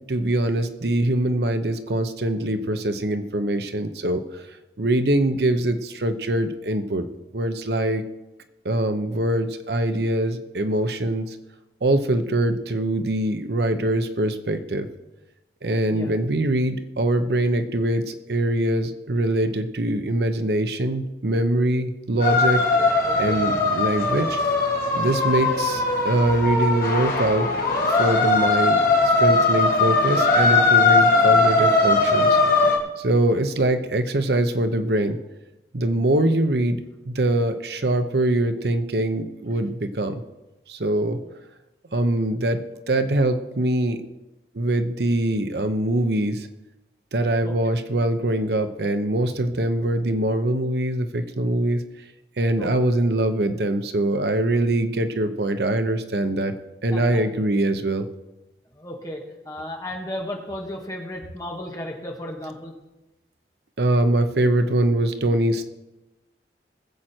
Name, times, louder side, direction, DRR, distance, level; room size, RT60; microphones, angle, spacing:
voice 1, 0.1-4.2 4.8-7.1 7.3-8.0 8.6-11.4 11.8-14.9 15.6-22.6 23.1-24.4 25.0-27.5 28.0-28.8 29.2-32.4 33.0-35.2 35.7-36.8 37.1-40.2 40.7-41.2 41.9-44.0 44.5-46.5 47.1-51.8 52.4-56.5 56.8-58.1 63.8-65.7, right 1 dB, 70° right, 9 dB, 0.8 m, -23 dB
voice 2, 15.9-16.2 22.7-23.4 47.4-47.5 52.6-52.7 56.9-57.3 58.7-62.7, left 1 dB, 20° left, 0 dB, 1.8 m, -34 dB
sound 1, 22.2-32.8, left 3 dB, 55° left, 2.2 m, -19 dB
20.5 x 7.7 x 4.5 m, 1.0 s
head